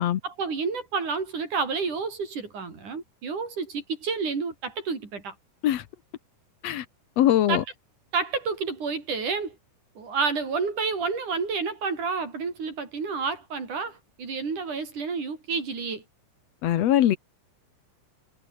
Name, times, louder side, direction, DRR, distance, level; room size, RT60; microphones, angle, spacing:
voice 1, 0.2-5.3 7.5-7.6 8.1-9.6 10.0-16.0, right 5 dB, 50° right, 6.3 m, -30 dB
voice 2, 7.2-7.6 16.6-17.2, left 12 dB, 80° left, 1.4 m, -21 dB
omnidirectional pair, 4.8 m